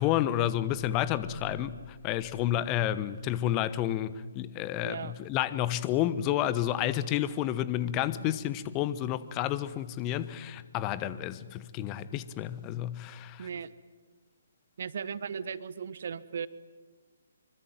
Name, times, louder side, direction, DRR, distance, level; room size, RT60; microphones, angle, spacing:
voice 1, 0.0-13.5, left 12 dB, 20° left, 1.1 m, -30 dB
sound 1, 0.7-3.4, equal, 25° right, 3.5 m, -49 dB
voice 2, 4.8-5.1 8.2-8.5 13.4-13.7 14.8-16.5, right 7 dB, 50° right, 1.2 m, -37 dB
25.5 x 24.5 x 9.5 m
figure-of-eight pair, 135°, 0 cm